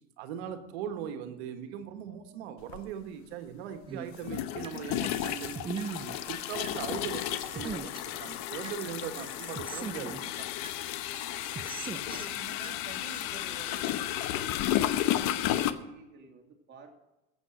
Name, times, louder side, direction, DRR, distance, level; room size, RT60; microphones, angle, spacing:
voice 1, 0.2-10.5, right 8 dB, 75° right, 7 dB, 1.7 m, -40 dB
sound 1, 2.7-2.8 4.2-15.7, left 12 dB, 55° left, 1.0 m, -33 dB
sound 2, 3.9-4.8 5.1-6.8 7.1-8.8 9.1-10.8 11.1-12.8 13.1-13.2, right 6 dB, 15° right, 0.5 m, -41 dB
voice 2, 11.9-16.9, right 3 dB, 35° right, 2 dB, 2.5 m, -49 dB
14.5 x 7.9 x 6.5 m, 0.97 s
supercardioid pair, 115°, 33 cm